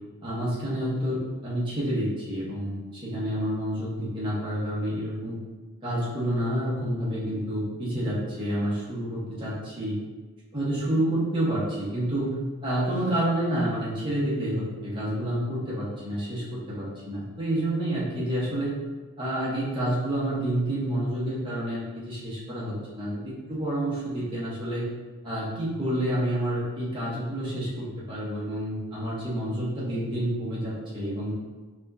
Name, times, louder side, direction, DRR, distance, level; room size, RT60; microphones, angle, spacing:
voice 1, 0.2-5.4 5.8-10.0 10.5-12.3 12.6-18.7 19.2-24.8 25.2-31.3, right 1 dB, 20° right, -8 dB, 1.1 m, -29 dB
4.5 x 2.9 x 2.7 m, 1.3 s
head